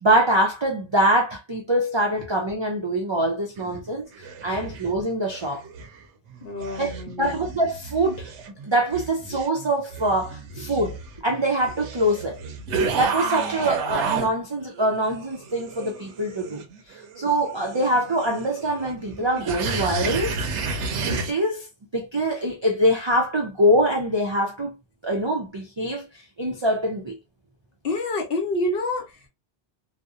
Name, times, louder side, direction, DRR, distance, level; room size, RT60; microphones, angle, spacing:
voice 1, 0.0-5.6 6.8-8.3 8.6-12.4 12.9-16.6 16.9-20.4 21.1-21.7 21.9-24.8 25.0-27.2, right 1 dB, 45° right, 0.3 m, -24 dB
sound 1, 3.6-6.0 6.3-14.3 14.7-21.3, right 5 dB, 85° right, 0.9 m, -32 dB
voice 2, 6.4-7.4 13.2-13.7 27.8-29.3, left 2 dB, 60° left, 0.8 m, -28 dB
2.7 x 2.0 x 2.3 m
omnidirectional pair, 1.2 m